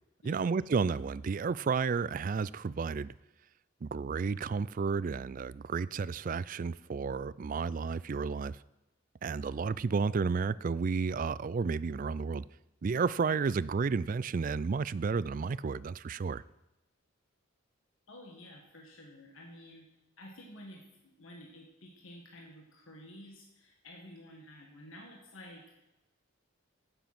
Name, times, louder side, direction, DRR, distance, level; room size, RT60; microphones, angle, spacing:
voice 1, 0.2-3.1 3.8-8.6 9.2-12.4 12.8-16.4, right 5 dB, 40° right, 0.3 m, -32 dB
voice 2, 18.1-19.9 20.2-25.8, left 1 dB, 80° left, 1.8 m, -51 dB
16.5 x 7.2 x 6.0 m
head